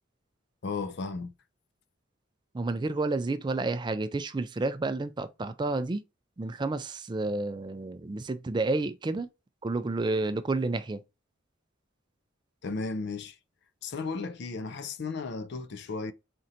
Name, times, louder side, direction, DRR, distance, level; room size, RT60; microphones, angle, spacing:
voice 1, 0.6-1.3 12.6-13.4 13.8-16.1, left 4 dB, 55° left, 0.5 m, -34 dB
voice 2, 2.5-6.0 6.4-9.3 9.6-11.0, right 3 dB, 20° right, 0.3 m, -30 dB
4.4 x 3.8 x 2.7 m
head